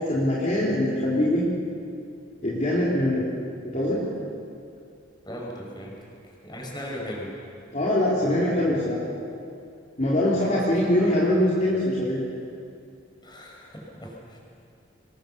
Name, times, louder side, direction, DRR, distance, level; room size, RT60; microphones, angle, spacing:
voice 1, 0.0-1.4 2.4-3.2 3.6-4.0 7.7-9.0 10.0-12.3, left 1 dB, 40° left, -7 dB, 3.9 m, -23 dB
voice 2, 5.3-6.0 6.4-7.3 10.3-10.6 13.2-14.4, equal, 25° left, -1 dB, 5.7 m, -37 dB
25.5 x 22.0 x 7.1 m, 2.5 s
head